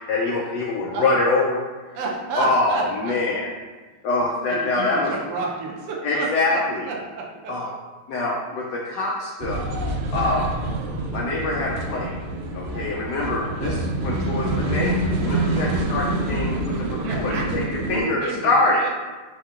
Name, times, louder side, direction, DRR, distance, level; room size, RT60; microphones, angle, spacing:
voice 1, 0.1-1.6 2.4-3.5 4.0-5.1 6.0-6.8 7.5-7.7 8.1-9.6 10.1-10.5 11.1-12.2 12.5-17.6 17.9-18.8, left 2 dB, 85° left, -3 dB, 0.9 m, -24 dB
voice 2, 1.9-3.2 4.5-7.5 10.2-10.4 13.4-13.8 16.9-17.5 17.8-18.9, right 3 dB, 65° right, -1 dB, 1.1 m, -31 dB
sound 1, 9.4-18.0, right 2 dB, 85° right, 1.5 m, -26 dB
4.5 x 4.1 x 2.4 m, 1.3 s
omnidirectional pair, 2.3 m